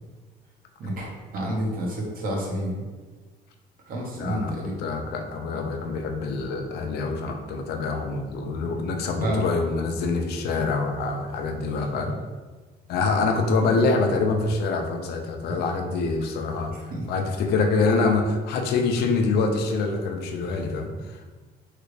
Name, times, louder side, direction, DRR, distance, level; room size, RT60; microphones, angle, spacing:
voice 1, 0.8-2.8 3.9-4.8 8.7-8.8 9.2-9.4 11.9-12.0 13.8-13.9 15.5-15.6 16.7-17.1, right 1 dB, 60° right, -1 dB, 0.9 m, -30 dB
voice 2, 4.1-4.5 4.8-12.2 12.9-21.2, left 3 dB, 75° left, 4 dB, 0.5 m, -25 dB
3.2 x 2.4 x 3.2 m, 1.4 s
cardioid pair, 110°, 17 cm